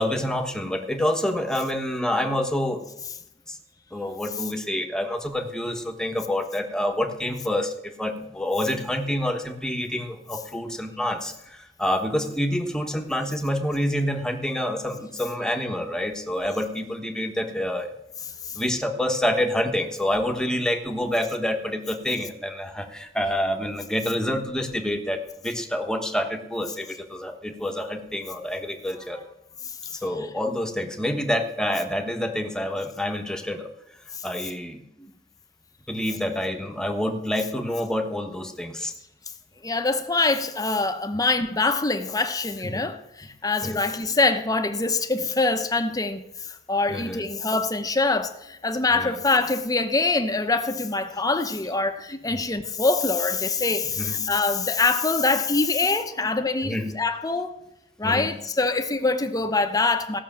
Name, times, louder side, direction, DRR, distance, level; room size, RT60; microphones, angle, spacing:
voice 1, 0.0-2.8 3.5-3.6 3.9-17.9 18.5-25.2 25.4-29.2 29.9-33.7 34.2-35.1 35.9-38.9 42.6-42.9 43.6-43.8 46.9-47.2 48.9-49.2 52.3-52.4 54.0-54.2 56.6-56.9 58.0-58.3 59.0-59.2, left 1 dB, 5° left, 1.2 m, -27 dB
voice 2, 39.6-57.5 58.0-60.2, left 3 dB, 20° left, 0.9 m, -24 dB
15.5 x 6.2 x 7.4 m
head